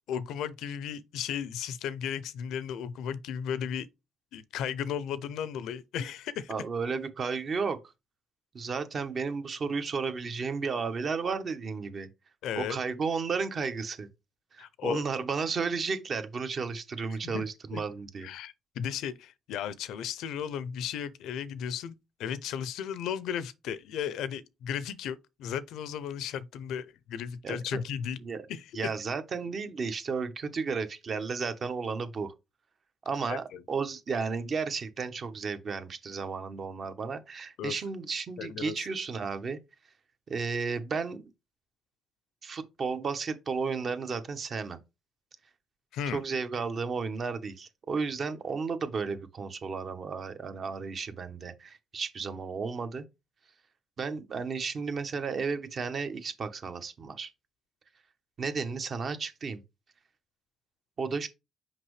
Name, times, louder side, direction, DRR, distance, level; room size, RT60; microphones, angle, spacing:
voice 1, 0.1-3.9 4.3-6.5 12.4-12.8 14.6-15.0 17.2-17.8 18.2-21.9 22.2-28.2 28.5-28.7 33.3-33.6 37.6-37.7 38.4-38.9 45.9-46.2, left 8 dB, 85° left, 0.5 m, -35 dB
voice 2, 6.5-7.8 8.5-12.1 12.6-14.1 14.5-18.3 27.4-27.8 28.2-28.4 28.7-32.3 33.0-39.6 40.3-41.2 42.4-44.8 46.1-53.0 54.0-57.3 58.4-59.6 61.0-61.3, right 5 dB, 50° right, 1.1 m, -33 dB
5.8 x 5.3 x 3.2 m
cardioid pair, 90°, 0 cm